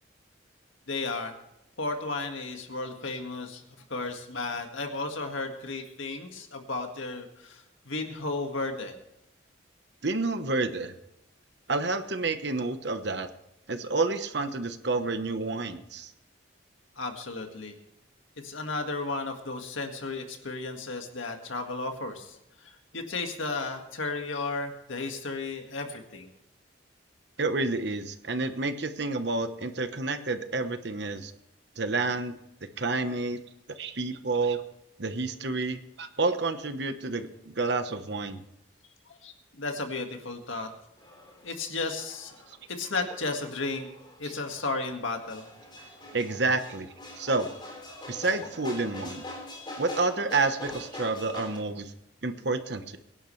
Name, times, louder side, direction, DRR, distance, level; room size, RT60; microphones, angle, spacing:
voice 1, 0.9-1.3 1.8-3.6 3.9-8.9 17.0-17.7 18.4-26.3 39.1-40.7 41.4-42.4 42.7-43.9 44.2-45.4, left 3 dB, 75° left, 4 dB, 1.9 m, -34 dB
voice 2, 10.0-10.9 11.7-13.3 13.7-16.1 27.4-31.3 31.8-32.3 32.8-33.4 33.8-34.6 35.0-38.4 44.2-44.3 46.1-46.9 47.2-47.5 48.1-49.2 49.8-51.9 52.2-53.0, right 3 dB, 55° right, 9 dB, 1.1 m, -29 dB
sound 1, 41.0-51.6, left 1 dB, 25° left, 3.8 m, -44 dB
23.5 x 11.0 x 3.3 m, 0.85 s
head